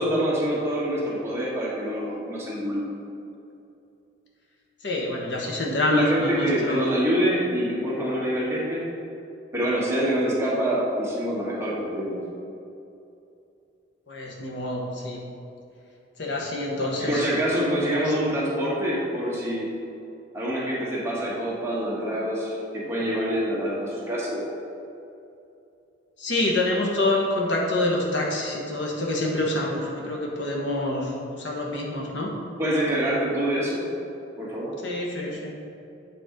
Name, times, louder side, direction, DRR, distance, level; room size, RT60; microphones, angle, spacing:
voice 1, 0.0-2.9 5.9-8.9 9.5-12.2 17.0-19.7 20.3-24.4 32.6-33.9 34.4-34.7, equal, 15° right, -7 dB, 1.7 m, -26 dB
voice 2, 4.8-7.0 14.1-15.2 16.2-17.3 18.1-18.2 26.2-31.1 31.4-32.3 34.8-35.5, left 2 dB, 70° left, -2 dB, 1.2 m, -26 dB
8.0 x 4.3 x 5.2 m, 2.7 s
head